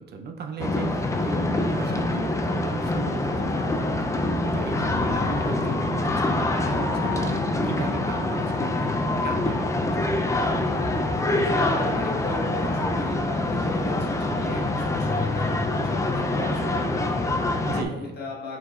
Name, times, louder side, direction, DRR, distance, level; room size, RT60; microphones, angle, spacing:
voice 1, 0.0-4.2 4.5-8.9 9.2-10.1 17.6-18.1, right 4 dB, 55° right, 5 dB, 0.5 m, -37 dB
sound 1, 0.6-17.8, left 2 dB, 15° left, 0.4 m, -25 dB
voice 2, 11.1-18.6, left 2 dB, 55° left, -3 dB, 1.5 m, -36 dB
4.9 x 3.9 x 2.4 m, 1.0 s
cardioid pair, 90°, 20 cm